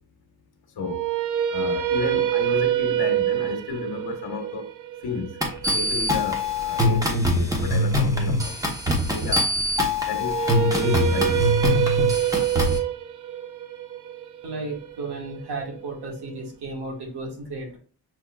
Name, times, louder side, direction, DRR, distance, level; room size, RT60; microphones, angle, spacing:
sound 1, 0.8-6.9 10.2-16.2, right 10 dB, 50° right, 0.5 m, -26 dB
voice 1, 1.5-4.7 5.0-5.4 5.7-8.6 9.1-9.5 10.1-11.6, left 4 dB, 70° left, 1.1 m, -32 dB
sound 2, 5.4-12.8, left 1 dB, 10° right, 1.0 m, -23 dB
voice 2, 14.4-17.8, right 3 dB, 75° right, 1.7 m, -34 dB
6.0 x 3.2 x 2.3 m
cardioid pair, 125°, 39 cm